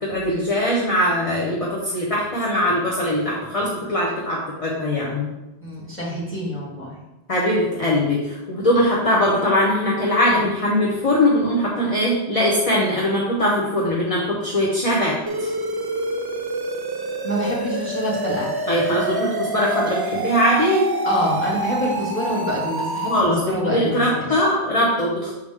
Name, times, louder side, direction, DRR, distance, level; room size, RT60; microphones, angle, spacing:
voice 1, 0.0-5.3 7.3-15.5 18.7-20.9 23.1-25.3, left 1 dB, 35° left, -4 dB, 1.0 m, -21 dB
voice 2, 5.6-7.0 17.2-18.5 21.0-24.4, equal, 10° left, -6 dB, 2.1 m, -26 dB
sound 1, 15.2-23.2, right 2 dB, 40° right, 0.3 m, -27 dB
6.6 x 5.0 x 3.6 m, 1.0 s
omnidirectional pair, 1.1 m